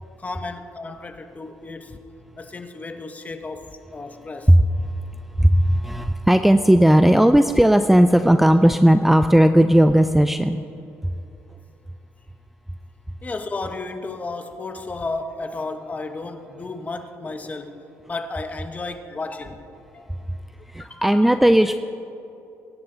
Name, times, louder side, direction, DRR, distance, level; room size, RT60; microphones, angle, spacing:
voice 1, 0.2-2.0 2.4-4.5 13.2-17.8 18.0-19.6 19.9-20.1 20.8-21.3, left 3 dB, 25° left, 7 dB, 1.2 m, -33 dB
voice 2, 5.4-10.6 20.7-21.8, equal, 5° right, 9 dB, 0.4 m, -15 dB
23.0 x 11.0 x 4.0 m, 2.8 s
cardioid pair, 105°, 6 cm